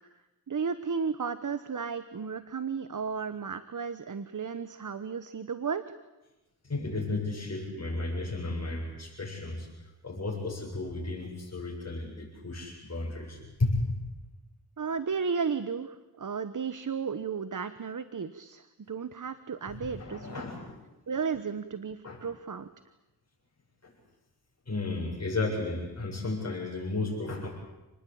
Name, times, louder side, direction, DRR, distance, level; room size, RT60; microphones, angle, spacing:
voice 1, 0.5-5.8 14.8-20.4 21.1-22.7, right 6 dB, 50° right, 12 dB, 1.2 m, -34 dB
voice 2, 6.6-9.7 10.0-14.0 19.7-20.8 22.0-22.2 23.8-23.9 24.7-27.5, left 2 dB, 40° left, -4 dB, 7.9 m, -33 dB
29.0 x 20.0 x 8.8 m, 1.0 s
cardioid pair, 70°, 39 cm